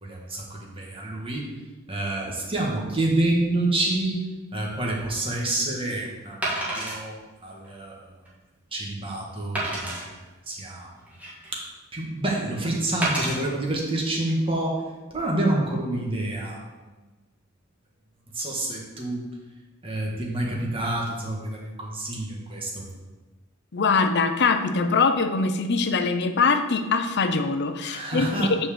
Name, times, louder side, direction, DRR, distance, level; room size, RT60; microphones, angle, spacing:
voice 1, 0.0-1.4 1.9-4.2 4.5-6.4 6.8-7.2 7.4-7.9 8.7-10.0 10.5-10.9 11.5-11.6 11.9-14.8 15.1-16.6 18.3-19.2 19.8-22.9 27.8-28.5, right 1 dB, 25° right, -2 dB, 1.7 m, -27 dB
Wood, 4.8-5.0 6.4-7.0 7.6-7.7 8.2-8.3 9.5-10.0 10.8-11.6 13.0-13.4 14.1-14.3, right 1 dB, 5° right, 1.9 m, -29 dB
voice 2, 23.7-28.7, left 4 dB, 55° left, 8 dB, 0.6 m, -23 dB
6.4 x 4.7 x 6.7 m, 1.2 s
head